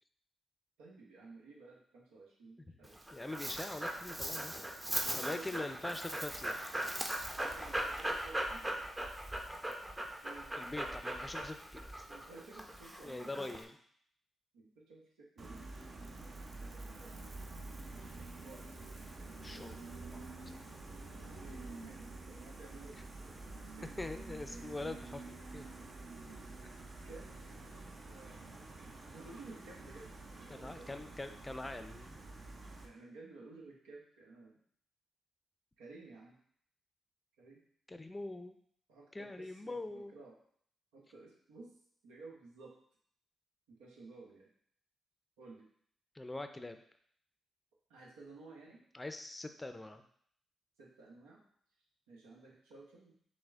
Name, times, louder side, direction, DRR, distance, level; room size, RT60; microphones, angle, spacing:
voice 1, 0.8-3.3 5.1-6.1 7.4-8.7 10.2-10.6 12.1-13.4 14.5-15.8 16.2-17.3 18.4-18.9 19.4-19.8 21.1-24.6 27.0-27.3 28.1-28.7 29.0-31.1 32.8-34.6 35.8-36.4 37.4-37.6 38.9-40.4 40.9-41.7 42.0-42.7 43.7-44.5 45.4-45.7 47.9-48.8 50.8-51.4 52.1-53.2, right 3 dB, 85° right, -3 dB, 0.9 m, -55 dB
Dog, 2.8-13.6, right 1 dB, 20° right, 0.8 m, -39 dB
voice 2, 3.1-4.9 5.2-6.7 10.6-11.8 13.0-13.8 19.4-19.8 20.1-20.2 24.0-25.7 30.5-32.2 37.9-38.5 39.1-40.1 46.1-46.8 48.9-50.0, left 2 dB, 20° left, 8 dB, 0.5 m, -43 dB
Gull seagull, 15.4-32.9, right 2 dB, 50° right, 0.8 m, -48 dB
6.1 x 2.2 x 3.6 m, 0.64 s
hypercardioid pair, 40°, 0 cm